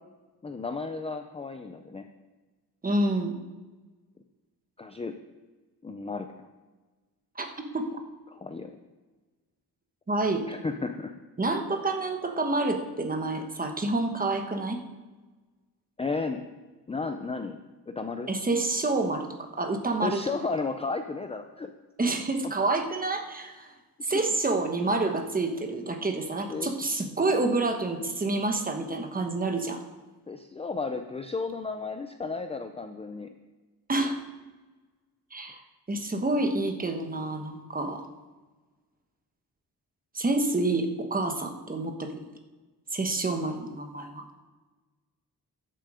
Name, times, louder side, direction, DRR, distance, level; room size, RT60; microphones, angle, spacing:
voice 1, 0.4-2.1 4.8-5.2 5.8-6.3 8.3-8.7 10.5-11.1 16.0-16.4 16.9-17.6 17.9-18.3 20.0-21.7 24.1-24.2 26.5-26.7 30.3-33.3, left 4 dB, 15° left, 7 dB, 0.4 m, -33 dB
voice 2, 2.8-3.4 7.3-7.5 7.7-8.0 10.1-10.5 11.4-14.8 18.3-20.2 22.0-23.7 24.0-29.8 33.9-34.2 35.3-35.6 35.9-38.0 40.1-42.2 42.9-44.3, right 2 dB, 20° right, 4 dB, 1.2 m, -28 dB
13.5 x 7.6 x 4.9 m, 1.3 s
wide cardioid pair, 155°, 39 cm